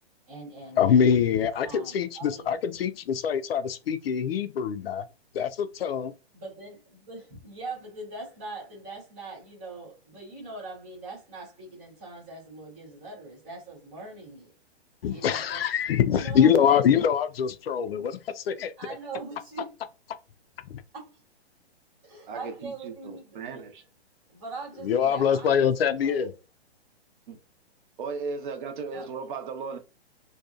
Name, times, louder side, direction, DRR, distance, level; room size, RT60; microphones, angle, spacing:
voice 1, 0.3-1.2 1.6-2.5 6.3-14.5 15.1-15.6 16.1-16.8 17.9-18.1 18.8-19.7 20.9-21.2 22.0-23.4 24.3-26.3 28.9-29.1, right 3 dB, 5° right, 0.3 m, -42 dB
voice 2, 0.8-5.1 5.3-6.1 15.0-18.7 20.7-20.8 24.8-26.3, left 8 dB, 60° left, 0.5 m, -24 dB
voice 3, 22.3-23.8 27.3-27.4 28.0-29.8, right 4 dB, 50° right, 0.7 m, -36 dB
2.7 x 2.3 x 2.3 m
hypercardioid pair, 150°, 33 cm